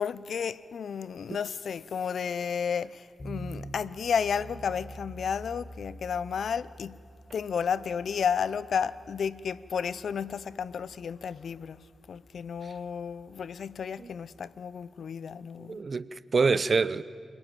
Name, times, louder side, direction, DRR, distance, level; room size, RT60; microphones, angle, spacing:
voice 1, 0.0-7.0 7.3-11.8 12.1-15.8, left 7 dB, 75° left, 0.6 m, -32 dB
sound 1, 3.2-14.1, right 1 dB, 35° left, 4.4 m, -47 dB
voice 2, 15.6-17.0, right 4 dB, 55° right, 0.7 m, -26 dB
28.0 x 18.5 x 9.2 m
supercardioid pair, 45°, 0 cm